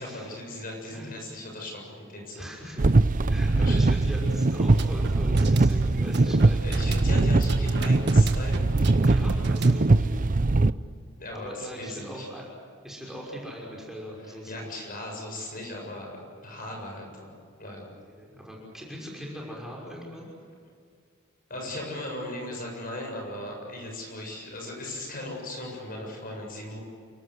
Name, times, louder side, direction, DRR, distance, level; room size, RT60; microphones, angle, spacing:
voice 1, 0.0-2.5 3.6-3.8 6.6-9.2 11.2-12.3 14.2-17.3 17.6-17.9 21.5-26.8, left 1 dB, 45° left, 1 dB, 7.4 m, -38 dB
voice 2, 2.3-2.8 3.3-6.6 9.0-10.2 11.3-12.4 12.8-14.8 18.0-20.3, equal, ahead, -3 dB, 5.9 m, -40 dB
sound 1, 2.8-10.7, right 2 dB, 40° right, 0.6 m, -21 dB
sound 2, 4.5-9.9, right 2 dB, 55° right, 1.7 m, -37 dB
29.5 x 18.5 x 8.0 m, 2.2 s
head